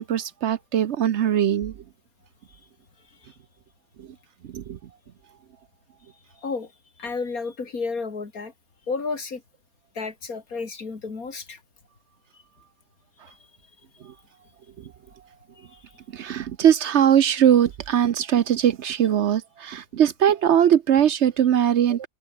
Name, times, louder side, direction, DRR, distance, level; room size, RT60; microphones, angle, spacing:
voice 1, 0.0-1.7 4.0-4.1 4.5-4.8 14.0-14.1 16.1-22.1, right 9 dB, 60° right, 0.9 m, -20 dB
voice 2, 7.0-8.5 8.9-9.4 9.9-11.6, left 4 dB, 85° left, 3.2 m, -31 dB
omnidirectional pair, 1.5 m